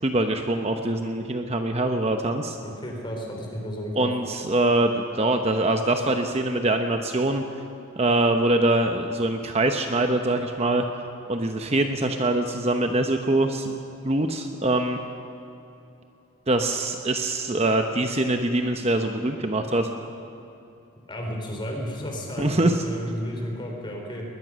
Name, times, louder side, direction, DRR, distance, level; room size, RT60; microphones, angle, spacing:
voice 1, 0.0-2.6 4.0-7.4 8.0-10.9 11.3-13.7 14.0-15.0 16.5-19.9 22.4-22.8, right 2 dB, 30° right, 5 dB, 0.8 m, -23 dB
voice 2, 2.6-4.1 21.1-24.2, equal, 20° left, 0 dB, 3.9 m, -32 dB
20.5 x 20.5 x 6.3 m, 2.7 s
head